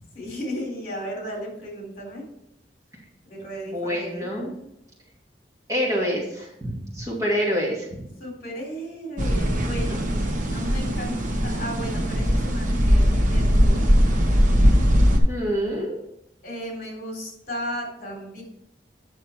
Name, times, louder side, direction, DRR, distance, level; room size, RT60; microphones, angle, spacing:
voice 1, 0.1-2.2 3.3-4.3 8.2-10.1 10.5-13.8 16.4-18.4, equal, 50° left, -1 dB, 3.6 m, -34 dB
voice 2, 3.7-4.5 5.7-8.0 15.3-15.9, equal, 20° right, -3 dB, 2.3 m, -26 dB
Rustling of Ivy, 9.2-15.2, equal, 45° right, 1.2 m, -20 dB
9.6 x 6.4 x 4.5 m, 0.83 s
head